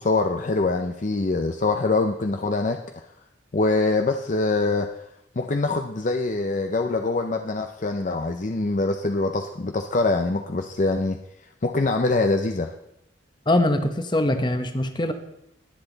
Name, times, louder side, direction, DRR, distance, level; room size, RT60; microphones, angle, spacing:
voice 1, 0.0-3.0 3.5-4.9 5.4-11.2 11.6-12.7, left 3 dB, 40° left, 6 dB, 0.6 m, -24 dB
voice 2, 13.5-15.1, left 1 dB, 25° left, 8 dB, 1.0 m, -22 dB
20.5 x 7.9 x 4.0 m, 0.82 s
head